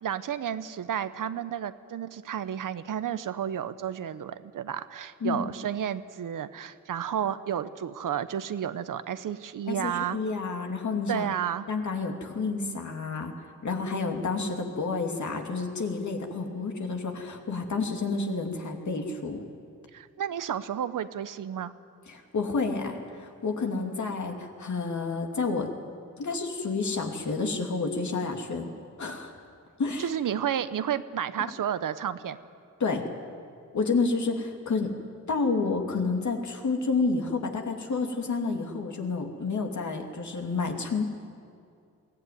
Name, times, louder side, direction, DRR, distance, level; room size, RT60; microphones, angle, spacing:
voice 1, 0.0-10.2 11.1-11.7 19.9-21.7 30.0-32.4, right 9 dB, 75° right, 13 dB, 0.9 m, -31 dB
voice 2, 9.7-11.3 11.7-13.3 13.6-19.4 22.1-25.7 26.2-28.7 29.0-29.3 29.8-30.1 32.8-33.0 33.7-34.9 35.3-41.0, left 4 dB, 60° left, 3 dB, 2.7 m, -29 dB
21.5 x 16.5 x 9.4 m, 2.3 s
cardioid pair, 75°, 32 cm